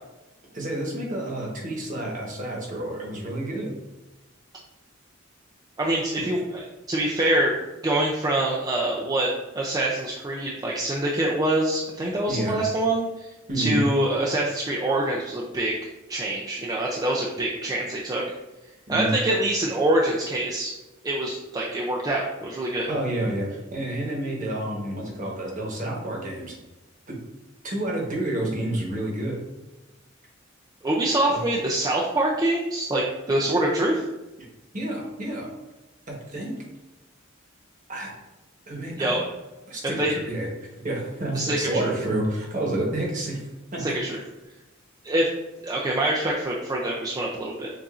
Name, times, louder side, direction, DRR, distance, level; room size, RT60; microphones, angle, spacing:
voice 1, 0.5-3.8 6.2-6.3 12.3-12.5 13.5-13.8 18.9-19.1 22.8-26.5 27.6-29.4 31.3-31.4 34.7-35.5 36.1-36.6 37.9-38.1 38.7-39.2 39.7-40.5 40.8-44.0, right 1 dB, 40° right, -2 dB, 1.1 m, -29 dB
voice 2, 5.8-6.6 6.9-7.5 7.8-9.3 9.5-13.3 13.6-15.8 16.1-18.2 18.9-20.7 21.0-22.9 30.8-34.0 39.0-39.2 40.0-40.1 41.3-41.9 43.8-44.2 45.0-45.3 45.6-47.7, right 1 dB, 20° right, -3 dB, 0.4 m, -25 dB
6.8 x 2.5 x 2.4 m, 1.0 s
head